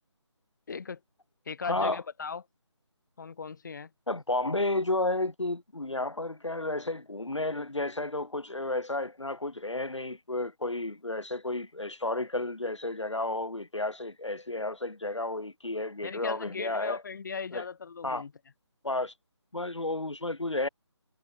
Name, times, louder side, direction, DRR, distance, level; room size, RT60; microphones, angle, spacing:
voice 1, 0.7-1.0 1.5-2.4 3.2-3.9 16.0-18.3, left 5 dB, 40° left, 2.6 m, -38 dB
voice 2, 1.7-2.0 4.1-17.0 17.5-17.6 18.0-18.2 18.8-19.1 19.5-20.7, left 2 dB, 75° left, 3.5 m, -32 dB
figure-of-eight pair, 155°, 15 cm